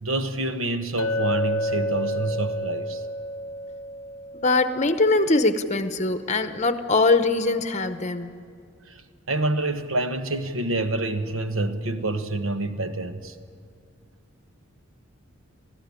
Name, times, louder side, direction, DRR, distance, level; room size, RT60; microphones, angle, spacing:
voice 1, 0.0-3.0 8.9-9.0 9.3-13.3, right 2 dB, 75° right, 1.3 m, -27 dB
Chink clink, 1.0-5.2, left 1 dB, 65° left, 0.6 m, -30 dB
voice 2, 4.3-8.3, left 3 dB, 35° left, 0.9 m, -22 dB
20.5 x 14.5 x 9.8 m
head